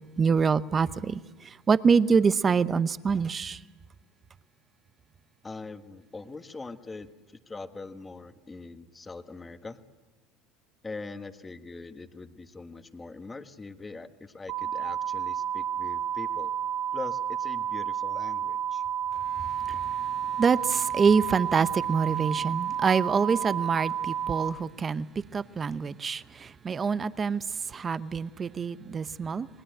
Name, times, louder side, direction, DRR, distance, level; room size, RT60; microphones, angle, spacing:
voice 1, 0.2-3.6 19.4-25.1 25.3-29.5, right 5 dB, 25° right, 0.8 m, -26 dB
voice 2, 5.4-9.8 10.8-16.5 16.9-18.8, left 3 dB, 15° left, 1.4 m, -42 dB
sound 1, 14.5-24.5, right 9 dB, 55° right, 1.3 m, -31 dB
28.5 x 20.0 x 7.9 m
supercardioid pair, 115°, 0 cm